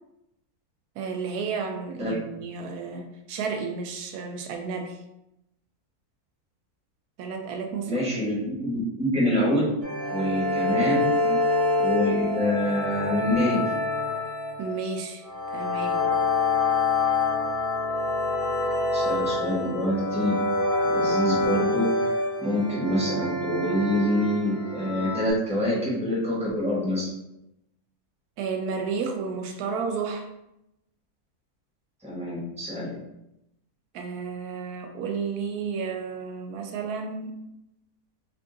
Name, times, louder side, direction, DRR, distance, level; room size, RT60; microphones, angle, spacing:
voice 1, 1.0-5.0 7.2-8.0 10.6-10.9 11.2-11.4 14.6-15.2 15.5-16.1 28.4-30.3 33.9-37.3, right 5 dB, 85° right, 4 dB, 1.1 m, -32 dB
voice 2, 7.9-9.7 10.1-11.1 11.8-13.6 18.9-20.4 20.8-22.1 22.4-27.1 32.0-32.9, left 1 dB, 5° right, -6 dB, 1.1 m, -26 dB
sound 1, 9.8-25.3, left 2 dB, 30° right, 0.8 m, -26 dB
3.5 x 2.4 x 3.8 m, 0.87 s
omnidirectional pair, 1.6 m